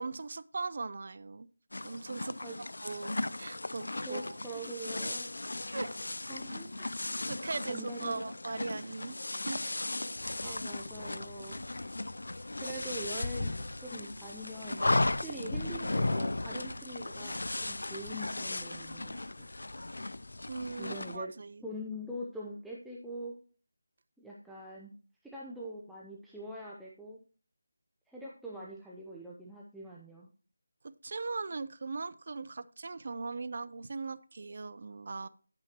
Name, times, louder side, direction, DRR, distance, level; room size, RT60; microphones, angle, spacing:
voice 1, 0.0-1.5 1.8-4.4 5.7-6.0 7.3-9.2 9.5-9.6 10.4-10.6 20.5-21.6 30.8-35.3, right 3 dB, 45° right, 15 dB, 0.5 m, -39 dB
sound 1, 1.7-21.2, left 2 dB, 80° left, 0.4 m, -36 dB
voice 2, 4.1-5.3 6.3-6.9 7.7-8.2 10.4-11.7 12.6-19.5 20.8-21.3 21.6-23.3 24.2-24.9 25.2-27.2 28.1-30.3, right 1 dB, ahead, -6 dB, 0.7 m, -43 dB
10.5 x 8.8 x 3.0 m, 0.41 s
figure-of-eight pair, 170°, 0 cm